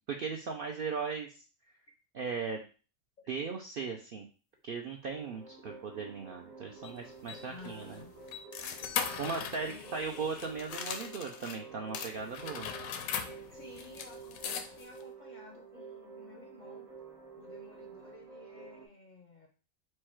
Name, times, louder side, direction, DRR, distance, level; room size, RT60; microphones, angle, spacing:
voice 1, 0.1-1.4 2.1-2.6 3.3-4.3 4.6-8.0 9.2-12.7, right 5 dB, 65° right, 2 dB, 0.5 m, -38 dB
sound 1, 5.0-18.9, right 4 dB, 85° right, 1.6 m, -50 dB
sound 2, 6.8-11.6 11.9-15.0, left 7 dB, 85° left, 1.0 m, -40 dB
voice 2, 7.4-8.1 8.9-9.9 13.5-16.9 17.4-19.5, left 3 dB, 50° left, 1 dB, 0.5 m, -53 dB
4.6 x 2.3 x 4.4 m, 0.36 s
omnidirectional pair, 1.4 m